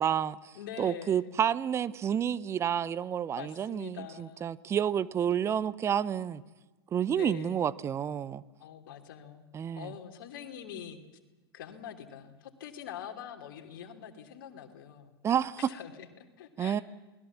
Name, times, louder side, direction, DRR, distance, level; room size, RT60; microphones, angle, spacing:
voice 1, 0.0-0.4 0.8-6.4 6.9-8.4 9.5-9.9 15.2-15.6 16.6-16.8, right 9 dB, 20° right, 18 dB, 0.8 m, -29 dB
voice 2, 0.5-1.4 3.4-4.5 7.1-7.7 8.6-9.4 9.8-11.0 11.5-15.1 15.7-16.8, left 9 dB, 55° left, 6 dB, 3.1 m, -44 dB
28.5 x 20.0 x 7.3 m, 1.2 s
figure-of-eight pair, 95°, 13 cm